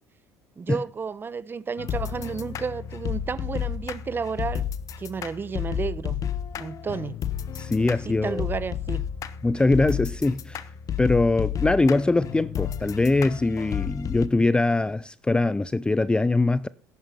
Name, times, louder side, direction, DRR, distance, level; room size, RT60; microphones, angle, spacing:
voice 1, 0.6-4.7 5.0-6.2 6.6-7.2 8.0-9.0, right 5 dB, 30° right, 0.8 m, -31 dB
sound 1, 1.8-14.3, left 9 dB, 50° left, 1.0 m, -32 dB
voice 2, 7.6-8.4 9.4-10.6 11.0-16.7, left 2 dB, 10° left, 0.4 m, -22 dB
11.0 x 9.5 x 5.6 m
supercardioid pair, 85°, 8 cm